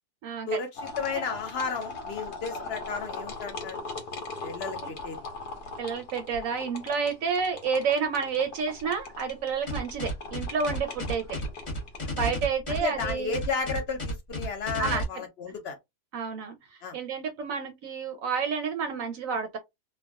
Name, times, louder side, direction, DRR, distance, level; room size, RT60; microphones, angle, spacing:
voice 1, 0.2-0.6 4.8-4.9 5.8-11.4 12.1-13.4 14.8-15.2 16.1-19.6, right 5 dB, 65° right, 0.9 m, -30 dB
sound 1, 0.8-12.1, left 3 dB, 85° left, 1.4 m, -40 dB
voice 2, 1.0-3.8 4.4-5.2 12.0-12.1 12.8-15.8 16.8-17.0, left 5 dB, 65° left, 0.6 m, -33 dB
sound 2, 9.7-15.0, left 1 dB, 30° left, 0.7 m, -33 dB
3.3 x 2.2 x 2.3 m
omnidirectional pair, 1.7 m